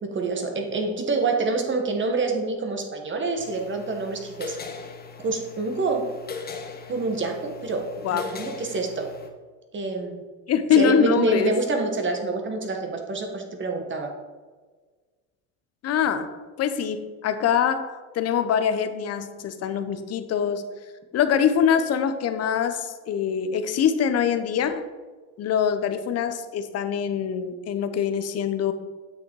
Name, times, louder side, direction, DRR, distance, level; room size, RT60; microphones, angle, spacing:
voice 1, 0.0-4.6 5.2-6.1 6.9-9.1 9.7-10.2 10.7-14.1, right 3 dB, 30° right, 4 dB, 1.8 m, -27 dB
sound 1, 3.4-9.3, left 5 dB, 25° left, 1.4 m, -40 dB
voice 2, 10.5-11.5 15.8-20.6 21.1-24.8 25.4-28.7, left 7 dB, 40° left, 9 dB, 1.0 m, -24 dB
8.3 x 6.3 x 4.8 m, 1.4 s
supercardioid pair, 90°, 36 cm